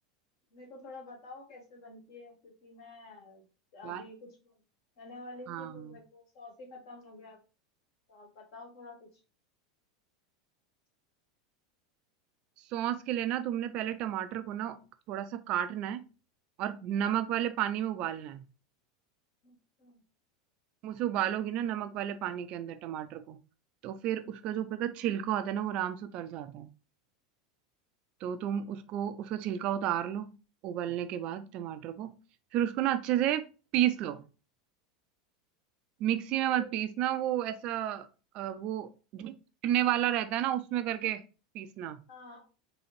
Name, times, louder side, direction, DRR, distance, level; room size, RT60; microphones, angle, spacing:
voice 1, 0.5-3.4 3.7-4.5 5.0-7.4 8.1-9.2 16.9-17.2 19.4-20.0 28.6-28.7 36.4-36.7 42.1-42.5, left 2 dB, 55° left, 0 dB, 1.5 m, -49 dB
voice 2, 5.5-5.9 12.7-14.8 15.1-16.0 16.6-18.4 20.8-23.4 23.8-26.7 28.2-30.3 30.6-32.1 32.5-33.4 33.7-34.2 36.0-38.1 38.3-39.3 39.6-41.2 41.5-42.0, right 11 dB, 45° right, 10 dB, 0.4 m, -31 dB
4.0 x 2.7 x 3.0 m, 0.34 s
figure-of-eight pair, 80°, 2 cm